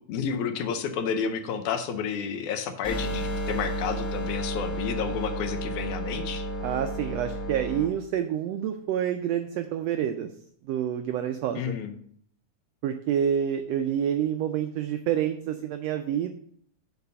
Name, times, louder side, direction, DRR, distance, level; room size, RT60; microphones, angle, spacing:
voice 1, 0.1-6.5 11.6-12.0, left 6 dB, 80° left, 8 dB, 2.2 m, -31 dB
sound 1, 2.8-7.8, equal, 50° left, 2.3 m, -32 dB
voice 2, 6.6-10.3 10.7-11.7 12.8-16.3, right 9 dB, 90° right, 7 dB, 1.4 m, -28 dB
7.0 x 4.2 x 6.6 m, 0.64 s
omnidirectional pair, 3.5 m